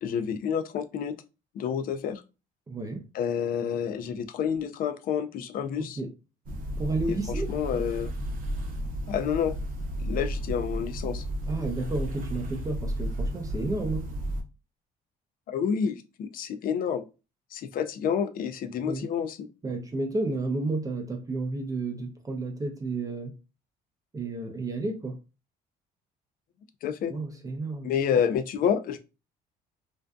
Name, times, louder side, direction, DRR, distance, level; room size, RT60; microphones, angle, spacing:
voice 1, 0.0-1.2 1.5-2.2 3.1-6.0 7.3-8.1 9.1-9.5 10.0-11.2 15.5-17.0 17.5-19.5 26.8-27.1 27.8-29.0, left 7 dB, 55° left, 0.4 m, -29 dB
voice 2, 2.7-3.0 5.8-6.1 6.8-7.5 11.5-14.1 18.9-19.1 19.6-23.3 24.1-25.2 27.1-27.9, right 3 dB, 20° right, 0.5 m, -31 dB
sound 1, 6.5-14.4, equal, 55° right, 0.7 m, -33 dB
2.5 x 2.3 x 2.2 m
cardioid pair, 110°, 17 cm